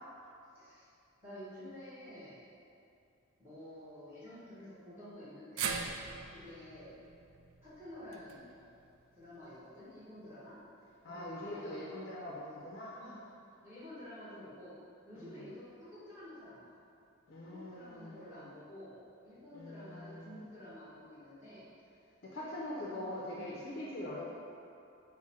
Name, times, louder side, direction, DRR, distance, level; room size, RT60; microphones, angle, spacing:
voice 1, 0.5-0.9 1.2-2.4 3.4-6.0 6.3-7.0 7.6-8.5 9.1-10.5 11.1-11.7 13.0-13.2 13.6-14.7 15.1-16.6 17.4-21.6 22.3-23.5, left 1 dB, 10° right, -12 dB, 1.0 m, -50 dB
sound 1, 5.6-9.8 10.2-10.3 11.4-11.5, right 6 dB, 65° right, 0.3 m, -42 dB
voice 2, 11.0-13.0 15.1-15.5 17.3-18.5 19.5-20.4 22.2-24.3, left 1 dB, 45° left, -5 dB, 0.4 m, -43 dB
5.9 x 2.1 x 4.2 m, 2.6 s
head